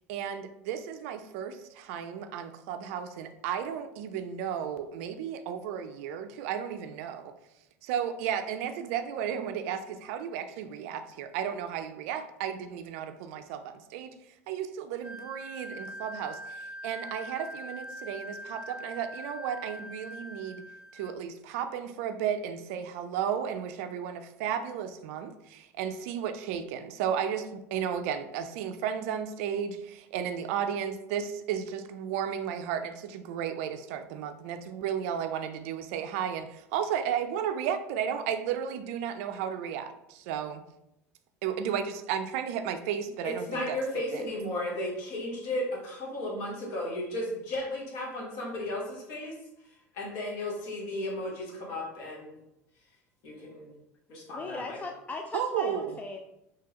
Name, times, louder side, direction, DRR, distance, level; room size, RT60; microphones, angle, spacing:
voice 1, 0.1-7.3 7.8-14.1 14.5-20.6 20.9-40.6 41.4-43.8 44.1-44.2 55.3-56.0, right 8 dB, 60° right, 9 dB, 0.4 m, -34 dB
Wind instrument woodwind instrument, 15.0-21.2, equal, 15° right, 1.2 m, -43 dB
voice 2, 43.2-49.3 49.9-52.3 53.2-53.7 54.1-54.8, left 1 dB, 55° left, -2 dB, 1.4 m, -34 dB
voice 3, 54.3-56.2, left 3 dB, 20° left, 3 dB, 0.4 m, -38 dB
3.7 x 2.8 x 2.8 m, 0.84 s
hypercardioid pair, 75°, 8 cm